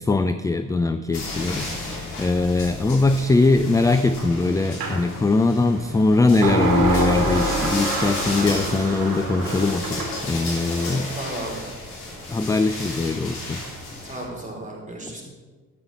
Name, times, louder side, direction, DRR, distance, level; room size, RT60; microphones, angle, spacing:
voice 1, 0.0-1.7 2.2-11.1 12.3-13.6, left 3 dB, 10° left, 10 dB, 0.3 m, -21 dB
sound 1, 1.1-14.2, left 2 dB, 65° left, 3.5 m, -33 dB
sound 2, 4.8-5.0 6.4-10.2, right 1 dB, 55° right, 2.5 m, -25 dB
voice 2, 11.1-11.6 14.0-15.2, right 1 dB, 15° right, -1 dB, 3.8 m, -34 dB
12.5 x 8.7 x 4.1 m, 1.4 s
figure-of-eight pair, 45°, 44 cm